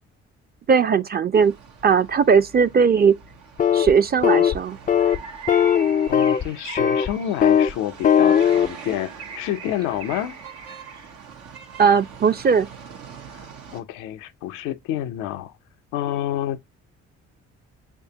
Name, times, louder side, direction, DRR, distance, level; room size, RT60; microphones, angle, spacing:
voice 1, 0.7-1.5 1.8-3.2 3.7-4.8 11.8-12.7, right 6 dB, 30° right, 0.4 m, -18 dB
sound 1, 1.3-13.8, right 6 dB, 85° right, 0.9 m, -43 dB
sound 2, 3.6-3.9 4.2-4.6 4.9-5.2 5.5-6.4 6.8-7.1 7.4-7.7 8.0-8.7, left 8 dB, 25° left, 0.4 m, -18 dB
Bird, 5.0-11.3, right 5 dB, 65° right, 1.0 m, -41 dB
voice 2, 6.1-10.4 13.3-13.5 13.7-15.5 15.9-16.6, left 12 dB, 85° left, 0.5 m, -28 dB
6.4 x 2.3 x 2.7 m
supercardioid pair, 60°, 31 cm